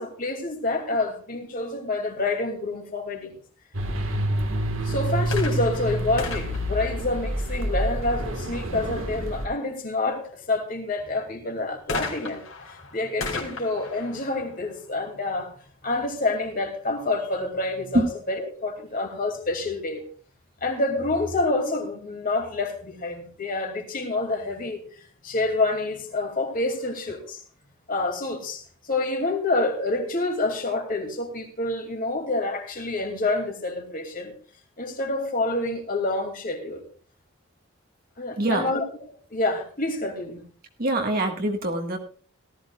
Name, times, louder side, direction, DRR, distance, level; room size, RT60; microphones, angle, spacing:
voice 1, 0.0-3.3 4.8-15.5 15.8-20.0 20.6-24.8 25.2-27.4 27.9-34.3 34.8-36.8 38.2-38.8 39.3-40.5, left 2 dB, 40° left, 2.6 m, -27 dB
sound 1, 3.7-9.5, right 1 dB, 70° right, 1.6 m, -28 dB
sound 2, 5.2-7.8 11.9-15.5 16.3-16.4, left 4 dB, 65° left, 3.0 m, -36 dB
voice 2, 38.4-38.7 40.8-42.0, right 1 dB, 45° right, 1.6 m, -24 dB
18.0 x 13.5 x 2.4 m
head